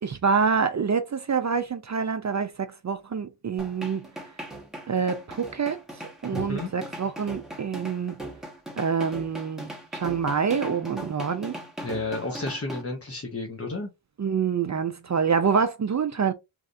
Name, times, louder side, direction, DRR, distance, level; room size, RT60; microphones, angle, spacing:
voice 1, 0.0-4.0 4.9-5.8 6.2-8.2 8.8-11.6 14.2-16.3, right 6 dB, 35° right, 0.4 m, -26 dB
sound 1, 3.6-12.8, right 1 dB, ahead, 1.0 m, -39 dB
voice 2, 6.3-6.7 11.8-13.9, left 2 dB, 30° left, 0.8 m, -32 dB
3.2 x 2.5 x 2.5 m
cardioid pair, 70°, 49 cm